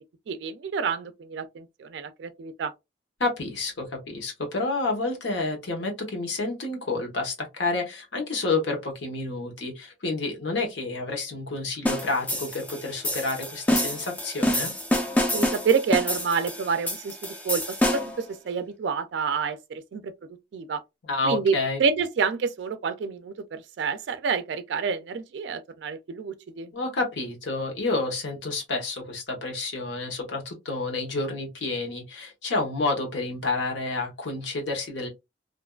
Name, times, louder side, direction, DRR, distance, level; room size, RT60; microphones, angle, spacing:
voice 1, 0.3-2.7 15.3-20.1 20.5-20.8 21.2-21.5 21.8-26.7, right 5 dB, 70° right, 0.3 m, -28 dB
voice 2, 3.2-14.7 21.0-21.8 26.7-35.1, left 3 dB, 75° left, 1.0 m, -29 dB
sound 1, 11.9-18.2, left 1 dB, 10° left, 0.3 m, -27 dB
2.5 x 2.3 x 2.2 m
head